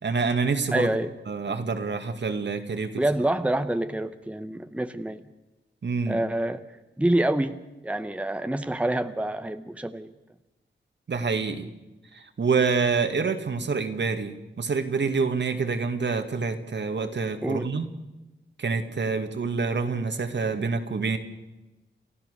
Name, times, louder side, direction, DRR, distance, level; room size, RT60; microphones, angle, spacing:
voice 1, 0.0-0.9 1.3-3.0 5.8-6.2 11.1-11.7 12.1-17.9 18.6-21.2, right 4 dB, 65° right, 7 dB, 2.0 m, -27 dB
voice 2, 0.7-1.1 3.0-5.2 6.1-6.6 7.0-7.6 7.8-10.1 17.4-17.7, right 1 dB, 5° right, 9 dB, 0.9 m, -26 dB
29.0 x 15.0 x 6.7 m, 1.0 s
wide cardioid pair, 100°, 20 cm